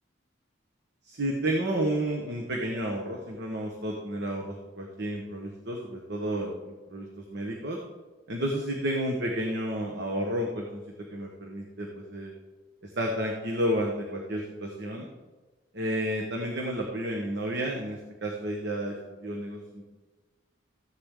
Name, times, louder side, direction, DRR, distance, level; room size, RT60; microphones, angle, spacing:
voice 1, 1.1-7.8 8.3-10.8 11.1-12.3 12.8-15.1 15.7-19.9, right 1 dB, 60° right, 0 dB, 1.3 m, -31 dB
15.0 x 10.5 x 3.8 m, 1.2 s
head